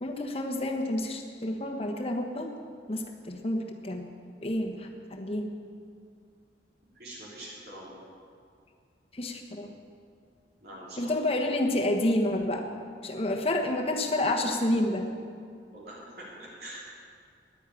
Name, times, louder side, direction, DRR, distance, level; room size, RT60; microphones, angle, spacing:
voice 1, 0.0-2.5 2.9-4.1 4.4-5.5 9.1-9.7 11.0-12.7 13.0-15.1, left 1 dB, 35° left, 3 dB, 1.2 m, -29 dB
voice 2, 6.9-8.0 10.6-11.1 15.7-16.8, right 1 dB, 60° right, -6 dB, 3.7 m, -44 dB
10.0 x 9.3 x 9.8 m, 2.3 s
head